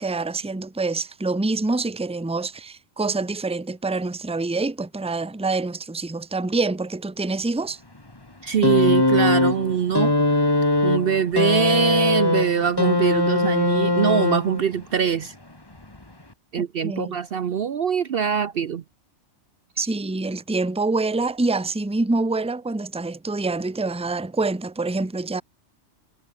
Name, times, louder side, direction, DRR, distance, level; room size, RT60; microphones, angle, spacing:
voice 1, 0.0-7.8 16.6-17.2 19.8-25.4, right 3 dB, 5° right, 0.8 m, -26 dB
voice 2, 8.4-10.2 10.8-15.3 16.5-18.8, right 7 dB, 55° right, 0.8 m, -23 dB
sound 1, 8.6-14.8 15.8-15.9, left 2 dB, 20° left, 2.0 m, -20 dB
omnidirectional pair, 1.3 m